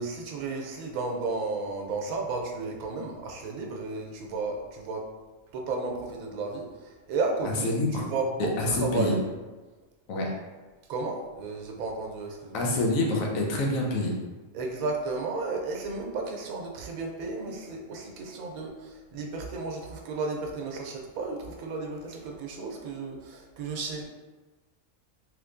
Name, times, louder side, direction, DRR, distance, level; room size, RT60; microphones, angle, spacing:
voice 1, 0.0-5.0 5.5-7.7 8.1-9.3 10.9-12.7 14.5-24.0, right 3 dB, 85° right, 1 dB, 1.0 m, -33 dB
voice 2, 7.4-8.0 8.6-9.2 10.1-10.3 12.5-14.2, left 2 dB, 80° left, -1 dB, 1.1 m, -26 dB
3.3 x 2.9 x 2.5 m, 1.2 s
omnidirectional pair, 1.5 m